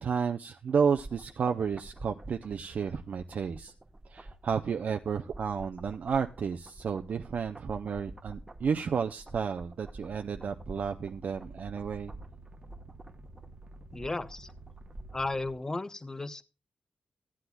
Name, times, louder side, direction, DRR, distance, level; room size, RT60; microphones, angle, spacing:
voice 1, 0.0-3.7 4.1-12.1, right 6 dB, 65° right, 6 dB, 0.5 m, -32 dB
sound 1, 0.7-15.4 15.6-15.7, right 1 dB, 20° right, 1.2 m, -49 dB
sound 2, 10.0-15.5, right 2 dB, 50° right, 1.0 m, -51 dB
voice 2, 13.9-14.5 15.1-16.4, left 2 dB, 20° left, 13 dB, 0.6 m, -34 dB
15.5 x 9.9 x 2.3 m, 0.30 s
wide cardioid pair, 130°, 3 cm